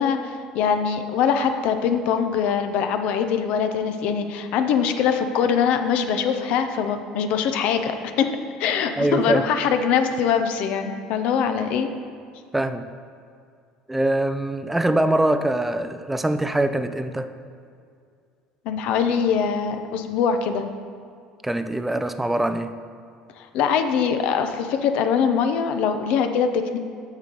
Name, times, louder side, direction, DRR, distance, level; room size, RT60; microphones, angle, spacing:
voice 1, 0.0-8.3 8.6-11.9 18.6-20.6 23.4-26.8, left 7 dB, 65° left, 7 dB, 0.6 m, -23 dB
voice 2, 9.0-9.4 12.5-12.9 13.9-17.3 21.4-22.8, right 1 dB, 5° right, 10 dB, 0.4 m, -23 dB
6.4 x 6.3 x 5.2 m, 2.3 s
supercardioid pair, 105°, 2 cm